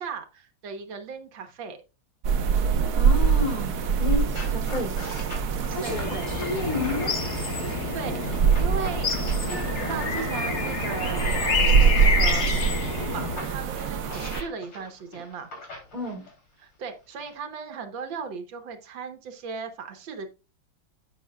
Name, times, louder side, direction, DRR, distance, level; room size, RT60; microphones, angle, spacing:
voice 1, 0.0-1.8 5.8-6.3 7.9-8.2 8.6-9.2 9.5-12.7 13.1-15.5 16.6-20.3, right 5 dB, 85° right, 7 dB, 1.9 m, -37 dB
sound 1, 2.2-14.4, right 6 dB, 65° right, 1.4 m, -25 dB
voice 2, 2.5-4.9 5.7-6.0 6.4-7.1 15.9-16.2, left 3 dB, 25° left, 0 dB, 3.4 m, -31 dB
sound 2, 3.2-7.3 8.2-12.4 13.0-16.4 17.2-17.3, left 2 dB, 75° left, 4.0 m, -43 dB
sound 3, 5.8-13.4, left 4 dB, 40° left, 1.3 m, -29 dB
11.0 x 8.4 x 2.3 m, 0.30 s
omnidirectional pair, 2.0 m